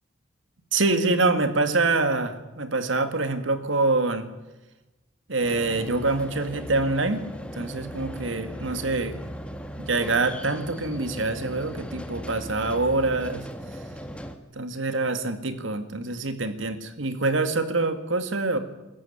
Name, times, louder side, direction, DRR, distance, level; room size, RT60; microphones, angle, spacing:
voice 1, 0.7-4.3 5.3-7.2 7.6-9.1 9.8-13.5 14.6-18.6, right 3 dB, 80° right, 9 dB, 2.0 m, -25 dB
sound 1, 5.4-14.4, equal, 5° left, 1.4 m, -37 dB
22.5 x 14.0 x 9.9 m, 1.1 s
head